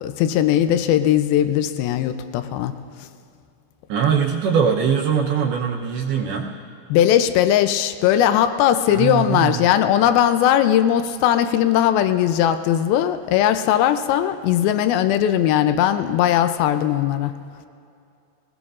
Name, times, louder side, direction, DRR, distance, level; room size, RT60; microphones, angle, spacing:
voice 1, 0.0-2.8 6.9-17.3, left 11 dB, 85° left, 9 dB, 2.1 m, -19 dB
voice 2, 3.9-6.5 8.9-9.7, right 7 dB, 75° right, 0 dB, 2.5 m, -21 dB
21.5 x 19.0 x 2.5 m, 2.5 s
omnidirectional pair, 4.9 m